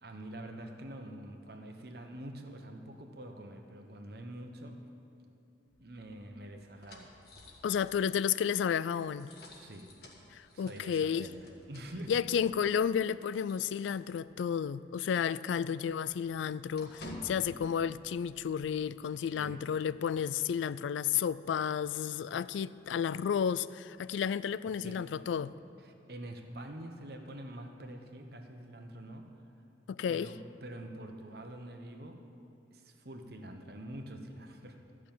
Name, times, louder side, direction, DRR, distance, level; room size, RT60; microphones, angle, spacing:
voice 1, 0.0-4.8 5.8-7.1 9.5-9.9 10.5-12.3 19.1-19.6 24.7-25.0 25.8-29.4 30.1-32.2 32.7-34.8, right 1 dB, 55° right, 1.1 m, -46 dB
sound 1, 5.7-14.5 14.8-15.0 15.3-18.8, left 1 dB, 55° left, 1.6 m, -53 dB
voice 2, 7.6-9.3 10.3-11.3 12.1-25.5 29.9-30.3, left 7 dB, 80° left, 0.3 m, -32 dB
13.5 x 6.2 x 8.9 m
head